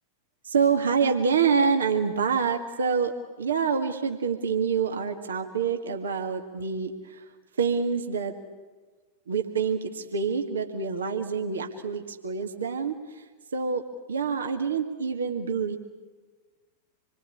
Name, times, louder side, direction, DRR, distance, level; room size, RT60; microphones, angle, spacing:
voice 1, 0.4-7.2 7.6-8.4 9.3-13.2 13.5-15.8, right 6 dB, 70° right, 4 dB, 1.9 m, -26 dB
27.0 x 22.0 x 8.6 m, 1.3 s
figure-of-eight pair, 90°, 0 cm